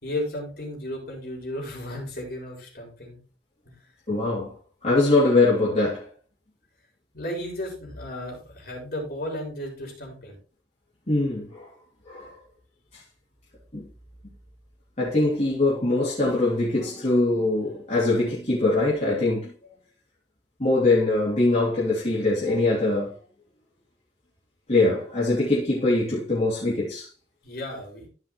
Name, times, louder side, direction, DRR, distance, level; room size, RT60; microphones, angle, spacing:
voice 1, 0.0-3.2 3.7-3.8 7.1-10.4 27.4-28.1, left 1 dB, 60° left, 4.1 m, -34 dB
voice 2, 4.1-4.5 4.8-6.1 11.1-11.7 12.1-12.3 13.7-13.9 15.0-19.5 20.6-23.1 24.7-27.1, left 2 dB, 40° left, 2.9 m, -22 dB
14.0 x 5.6 x 3.0 m
head